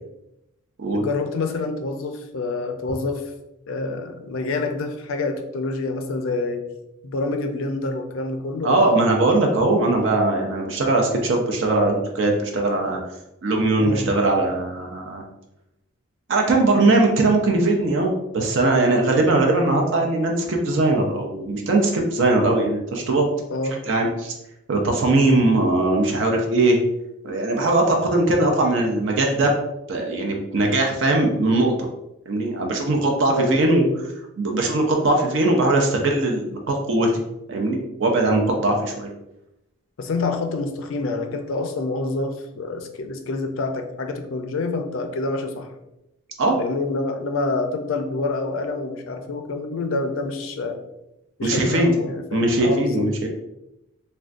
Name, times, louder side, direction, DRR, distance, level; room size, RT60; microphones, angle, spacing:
voice 1, 0.9-3.2 3.7-6.6 7.0-9.3 13.8-14.1 23.5-23.8 33.3-33.8 40.0-45.7 46.6-50.8 51.4-53.1, left 3 dB, 65° left, 5 dB, 0.4 m, -27 dB
voice 2, 8.6-13.0 13.4-15.2 16.3-23.3 23.9-24.3 24.7-26.8 27.2-29.5 29.9-31.9 32.3-33.9 34.4-37.1 37.5-39.1 46.4-46.6 51.4-51.9 52.3-53.3, right 2 dB, 55° right, 1 dB, 0.4 m, -20 dB
3.5 x 2.2 x 2.4 m, 0.88 s
head